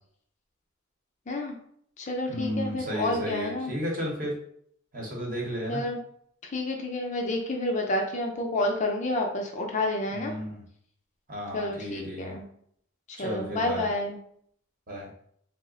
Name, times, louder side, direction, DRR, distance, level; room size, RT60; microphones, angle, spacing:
voice 1, 1.3-1.6 2.0-3.7 5.7-6.0 6.5-10.4 11.5-12.4 13.1-14.2, left 2 dB, 35° left, 2 dB, 0.4 m, -29 dB
voice 2, 2.3-4.4 4.9-5.8 10.1-10.6 11.3-12.4 13.2-13.9 14.9-15.1, equal, 45° right, -2 dB, 0.9 m, -33 dB
2.9 x 2.0 x 3.7 m, 0.66 s
head